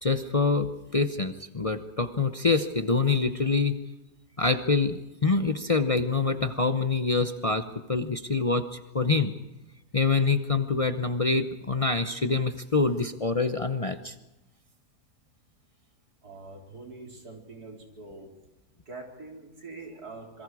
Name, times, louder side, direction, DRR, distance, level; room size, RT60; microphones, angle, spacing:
voice 1, 0.0-3.8 4.4-9.3 9.9-14.1, left 4 dB, 40° left, 8 dB, 0.5 m, -26 dB
voice 2, 16.2-18.3 18.9-20.4, right 3 dB, 65° right, 1 dB, 4.3 m, -44 dB
27.0 x 22.5 x 4.8 m, 1.0 s
omnidirectional pair, 1.8 m